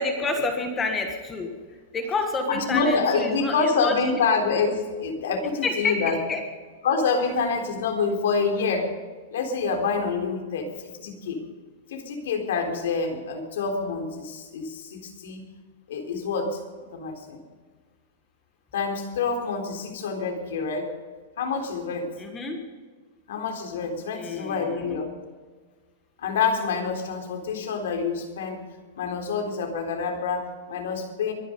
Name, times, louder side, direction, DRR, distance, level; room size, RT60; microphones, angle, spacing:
voice 1, 0.0-1.5 1.9-3.9 5.6-6.4 22.2-22.6 24.1-24.9, left 3 dB, 15° left, 4 dB, 1.6 m, -29 dB
voice 2, 2.5-6.2 6.8-8.9 9.3-11.4 11.9-15.4 15.9-16.6 16.9-17.4 18.7-20.9 21.4-22.1 23.3-25.1 26.2-28.6 28.9-31.3, left 4 dB, 80° left, 4 dB, 3.9 m, -27 dB
23.0 x 10.5 x 5.3 m, 1.5 s
supercardioid pair, 165°, 0 cm